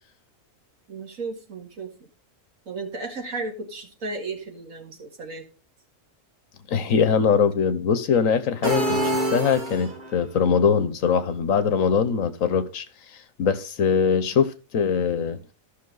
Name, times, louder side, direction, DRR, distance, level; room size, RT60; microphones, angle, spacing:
voice 1, 0.9-2.1 2.7-5.5 14.2-14.4, right 3 dB, 85° right, 2.4 m, -34 dB
voice 2, 6.7-12.8 13.4-15.4, left 6 dB, 80° left, 1.4 m, -22 dB
sound 1, 8.6-10.2, right 1 dB, 35° right, 2.1 m, -25 dB
14.0 x 5.9 x 3.9 m
omnidirectional pair, 1.4 m